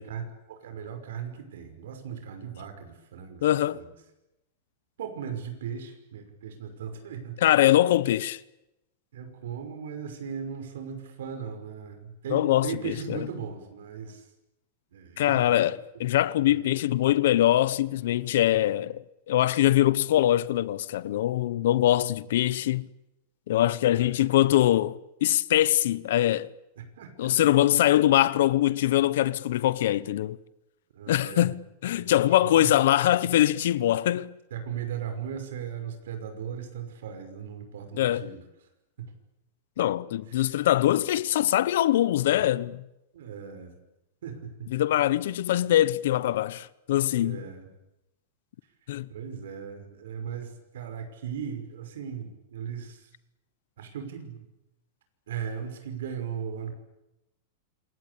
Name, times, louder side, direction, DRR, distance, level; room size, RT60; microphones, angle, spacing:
voice 1, 0.0-3.5 3.7-3.9 5.0-7.4 9.1-14.3 14.9-15.6 16.5-16.7 23.9-24.3 26.8-27.1 30.9-31.5 32.0-32.7 34.5-38.4 39.0-39.1 40.3-40.5 43.1-43.7 44.2-44.7 47.2-47.7 49.1-53.1 53.8-54.4 55.3-56.7, right 7 dB, 80° right, 5.6 m, -37 dB
voice 2, 3.4-3.8 7.4-8.4 12.3-13.3 15.2-19.0 19.3-22.8 23.5-26.5 27.2-30.4 31.1-34.3 37.9-38.3 39.8-42.8 44.7-47.4 48.9-49.1, left 13 dB, 65° left, 0.9 m, -23 dB
27.5 x 22.5 x 8.5 m
supercardioid pair, 175°, 0 cm